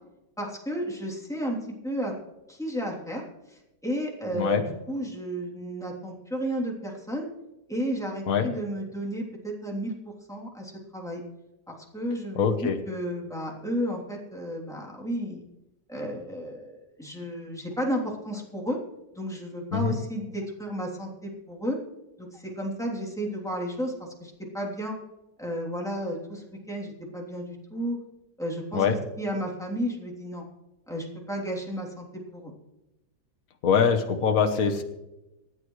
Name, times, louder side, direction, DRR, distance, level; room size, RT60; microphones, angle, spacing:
voice 1, 0.4-1.6 1.8-2.1 2.5-3.2 3.5-7.3 7.7-9.9 10.3-11.2 11.7-15.4 15.9-18.8 19.1-21.8 22.2-25.0 25.4-28.0 28.4-30.4 30.9-32.0 32.3-32.5, equal, ahead, -2 dB, 3.2 m, -32 dB
voice 2, 4.3-4.6 8.3-8.5 12.4-12.8 19.7-20.0 28.7-29.0 33.6-34.8, left 6 dB, 65° left, 6 dB, 1.5 m, -23 dB
26.5 x 9.8 x 3.2 m, 0.96 s
omnidirectional pair, 1.7 m